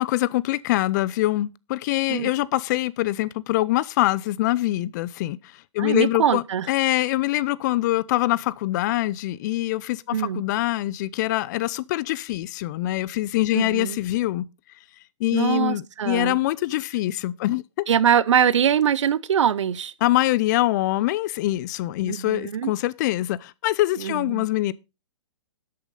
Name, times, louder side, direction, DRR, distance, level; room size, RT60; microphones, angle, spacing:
voice 1, 0.0-5.4 5.7-14.5 15.2-17.6 20.0-24.7, left 16 dB, 35° left, 0.5 m, -24 dB
voice 2, 5.8-6.7 10.1-10.4 13.5-14.0 15.3-16.4 17.9-19.9 22.1-22.7 24.0-24.5, right 8 dB, 65° right, 0.8 m, -23 dB
12.5 x 8.5 x 3.8 m
hypercardioid pair, 130°, 16 cm